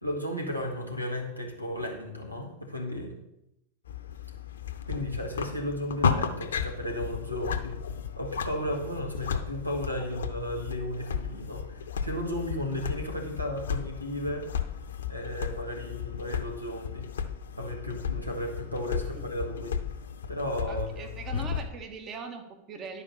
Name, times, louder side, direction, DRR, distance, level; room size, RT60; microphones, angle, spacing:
voice 1, 0.0-3.1 4.9-7.8 8.2-14.5 15.1-17.1 17.6-19.8 20.3-21.1, equal, 90° right, 2 dB, 1.7 m, -34 dB
sound 1, 3.9-21.7, left 7 dB, 65° left, 0.7 m, -34 dB
voice 2, 20.7-23.0, right 5 dB, 30° right, 5 dB, 1.3 m, -41 dB
11.0 x 4.9 x 6.7 m, 0.84 s
figure-of-eight pair, 90°, 0 cm